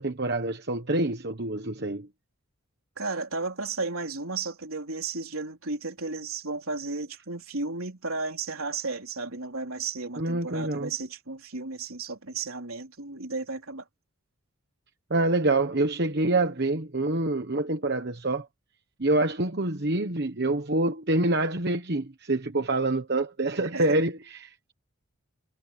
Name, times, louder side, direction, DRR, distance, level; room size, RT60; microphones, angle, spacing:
voice 1, 0.0-2.1 10.2-10.9 15.1-18.5 19.0-24.7, right 2 dB, 50° right, 1.2 m, -26 dB
voice 2, 3.0-13.8 23.6-24.0, right 3 dB, 75° right, 3.7 m, -34 dB
head